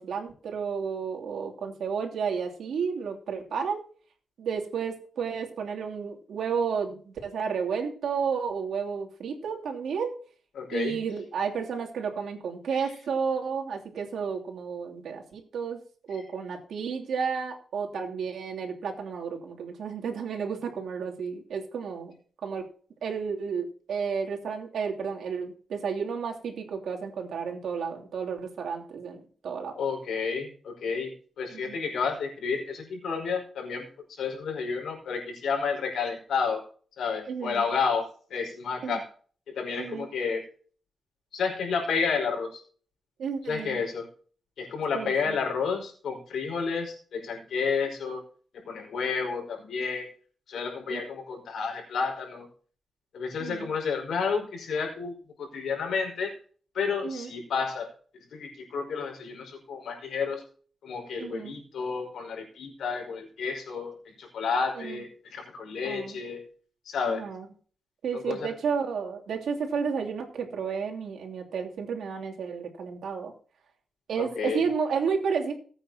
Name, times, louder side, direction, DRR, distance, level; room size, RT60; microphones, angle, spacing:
voice 1, 0.0-3.8 4.4-10.1 10.7-15.8 16.1-22.2 22.4-22.6 23.0-29.7 31.5-31.8 37.3-37.6 38.8-39.0 39.8-40.1 43.2-43.8 44.9-45.4 50.9-51.0 53.4-53.7 57.0-57.3 61.2-61.5 64.7-65.0 65.8-66.2 67.0-67.5 68.0-73.3 74.1-75.5, right 6 dB, 90° right, 1 dB, 3.0 m, -32 dB
voice 2, 10.5-11.0 16.1-16.2 29.8-36.6 37.0-39.0 39.5-40.4 41.3-42.6 43.5-44.1 44.6-48.2 48.5-50.1 50.5-52.5 53.1-55.1 55.4-56.3 56.7-60.4 60.8-66.4 66.8-67.2 68.1-68.5 74.2-74.6, left 5 dB, 90° left, 1 dB, 5.0 m, -31 dB
19.0 x 9.0 x 2.9 m, 0.44 s
wide cardioid pair, 115°, 0 cm